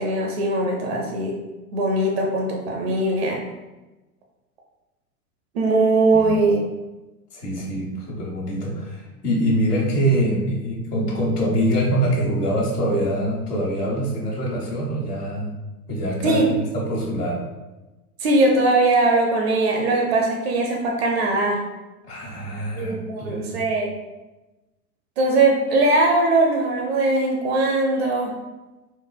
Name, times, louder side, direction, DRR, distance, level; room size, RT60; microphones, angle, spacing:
voice 1, 0.0-1.3 1.7-3.4 5.5-6.6 16.2-16.5 18.2-21.6 22.8-23.9 25.2-28.3, right 2 dB, 40° right, 0 dB, 0.5 m, -20 dB
voice 2, 7.3-15.5 15.9-17.4 22.0-23.6, right 1 dB, 75° left, -4 dB, 1.2 m, -24 dB
3.9 x 2.4 x 2.3 m, 1.1 s
figure-of-eight pair, 95°, 47 cm